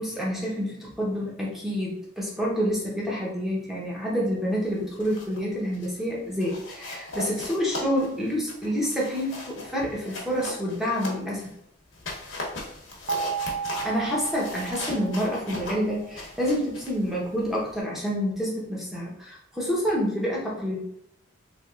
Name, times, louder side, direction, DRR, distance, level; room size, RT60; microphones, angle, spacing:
voice 1, 0.0-11.4 13.8-20.8, equal, ahead, -5 dB, 0.7 m, -28 dB
sound 1, 4.8-5.4 5.7-6.0 6.4-11.5 11.9-17.8, left 2 dB, 80° left, 0.9 m, -38 dB
sound 2, 13.1-16.0, right 6 dB, 75° right, 0.4 m, -34 dB
3.4 x 3.0 x 2.3 m, 0.75 s
head